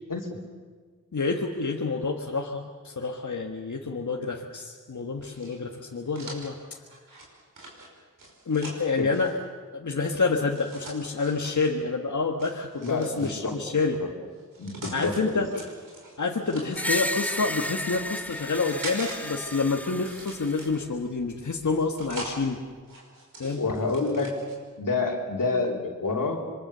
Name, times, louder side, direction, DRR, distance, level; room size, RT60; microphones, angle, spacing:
voice 1, 1.1-6.8 8.4-9.4 9.7-14.0 14.9-15.5 16.2-22.6 23.4-23.6, left 4 dB, 65° left, 1 dB, 1.7 m, -28 dB
sound 1, 5.2-9.3 10.5-11.6 12.4-13.6 14.3-15.2 15.5-17.0 17.7-19.2 19.5-21.0 21.6-22.4 22.8-24.6, right 2 dB, 85° right, 5.4 m, -43 dB
voice 2, 12.8-13.6 14.0-14.1 14.6-15.4 23.4-24.3 24.8-26.4, left 3 dB, 90° left, 0 dB, 3.3 m, -28 dB
Screech, 16.7-20.8, left 1 dB, 5° left, 1.4 m, -33 dB
26.5 x 22.5 x 6.9 m, 1.5 s
cardioid pair, 40°, 32 cm